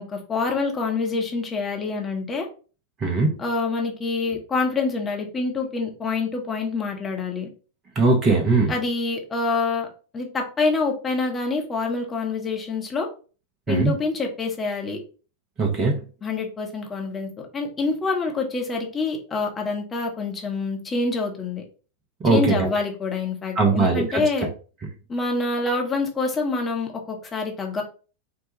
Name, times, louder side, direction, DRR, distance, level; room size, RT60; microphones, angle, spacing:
voice 1, 0.0-2.5 3.4-7.5 8.7-9.9 10.1-13.1 13.7-15.0 16.2-21.6 22.2-24.5 25.1-27.8, left 3 dB, 20° left, 1 dB, 0.9 m, -26 dB
voice 2, 3.0-3.3 8.0-8.7 13.7-13.9 15.6-16.0 22.2-22.7 23.6-24.2, right 3 dB, 30° right, 1 dB, 0.8 m, -20 dB
4.3 x 2.2 x 3.0 m, 0.37 s
figure-of-eight pair, 90°, 0 cm